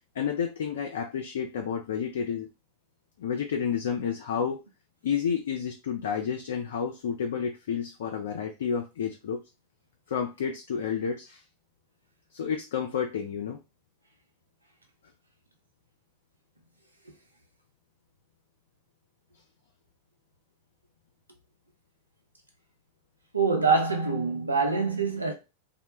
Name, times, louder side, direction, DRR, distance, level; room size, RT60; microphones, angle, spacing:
voice 1, 0.2-2.5 3.2-4.6 5.0-9.4 10.1-11.4 12.3-13.6, left 7 dB, 60° left, 0.4 m, -30 dB
voice 2, 23.3-25.3, right 4 dB, 80° right, 0.6 m, -25 dB
2.1 x 2.1 x 2.9 m
figure-of-eight pair, 90°, 0 cm